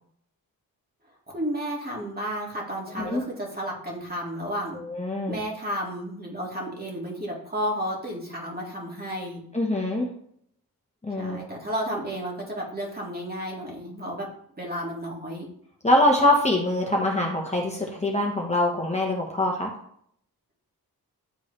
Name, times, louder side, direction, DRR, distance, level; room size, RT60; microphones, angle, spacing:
voice 1, 1.3-4.8 5.3-9.4 11.2-14.3 14.6-15.5, equal, 25° right, -3 dB, 2.3 m, -32 dB
voice 2, 4.7-5.4 9.5-10.1 11.0-11.5 15.8-19.7, left 1 dB, 15° left, -2 dB, 1.5 m, -24 dB
10.5 x 3.7 x 3.3 m, 0.67 s
cardioid pair, 65°, 38 cm